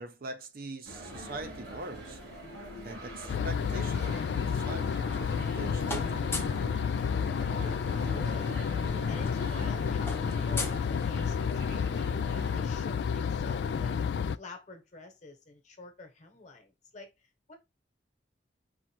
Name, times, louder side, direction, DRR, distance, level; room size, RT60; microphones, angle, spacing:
voice 1, 0.0-2.2 2.8-4.2 4.5-4.9 5.6-6.1, right 3 dB, 50° right, 0.6 m, -42 dB
sound 1, 0.8-12.6, equal, 70° right, 2.7 m, -43 dB
sound 2, 3.3-14.4, left 6 dB, 65° left, 0.3 m, -30 dB
sound 3, 5.4-5.6 5.8-6.7 8.0-8.1 8.4-8.6 8.9-11.5, left 3 dB, 15° left, 0.8 m, -40 dB
voice 2, 7.5-8.7 9.1-14.0 14.3-17.6, left 2 dB, 40° left, 1.2 m, -48 dB
4.4 x 2.5 x 4.4 m
head